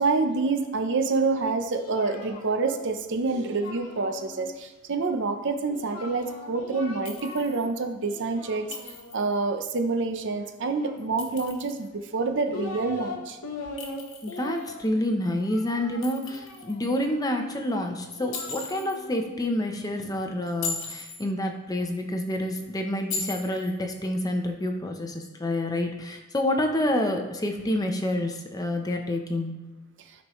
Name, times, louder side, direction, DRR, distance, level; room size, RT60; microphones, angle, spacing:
voice 1, 0.0-8.7 9.1-13.4, right 3 dB, 55° right, 6 dB, 0.6 m, -27 dB
Singing, 1.3-4.5 5.7-7.7 8.0-9.2 10.6-11.6 12.2-13.2 13.4-17.1 17.9-20.1, left 2 dB, 80° left, 1.1 m, -41 dB
Chink clink, 7.1-7.7 8.7-9.4 11.0-11.9 13.8-14.7 16.0-16.8 18.3-19.0 20.5-21.2 23.1-23.8, left 4 dB, 60° left, 1.3 m, -37 dB
voice 2, 14.2-29.7, left 1 dB, 15° left, 4 dB, 0.7 m, -28 dB
13.0 x 5.4 x 3.1 m, 1.1 s
head